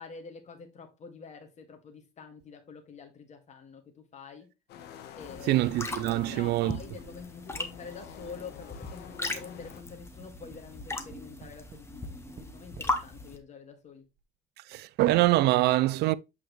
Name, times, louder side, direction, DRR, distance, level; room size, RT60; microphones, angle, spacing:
voice 1, 0.0-4.5 5.1-5.7 6.3-14.1, left 5 dB, 45° left, 2.0 m, -47 dB
sound 1, 4.7-9.8, left 9 dB, 80° left, 1.3 m, -48 dB
sound 2, 5.2-13.4, left 2 dB, 15° left, 1.3 m, -38 dB
voice 2, 5.5-6.8 14.7-16.1, right 16 dB, 75° right, 0.5 m, -24 dB
Tap, 9.9-13.0 13.8-13.9 14.2-14.3, right 8 dB, 60° right, 1.0 m, -51 dB
8.4 x 4.7 x 3.2 m
cardioid pair, 110°, 17 cm